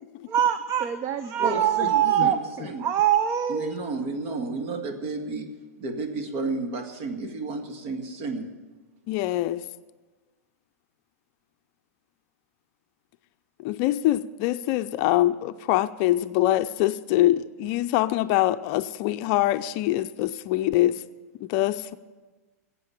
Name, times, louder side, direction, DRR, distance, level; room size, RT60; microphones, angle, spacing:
voice 1, 0.3-3.8, right 10 dB, 35° right, 0.7 m, -24 dB
voice 2, 1.4-2.9 3.5-5.5 5.8-8.5, right 3 dB, 50° right, 2.0 m, -32 dB
voice 3, 9.1-9.6 13.6-20.9 21.5-22.0, left 15 dB, 45° left, 0.5 m, -24 dB
15.0 x 8.3 x 8.7 m
hypercardioid pair, 130°, 9 cm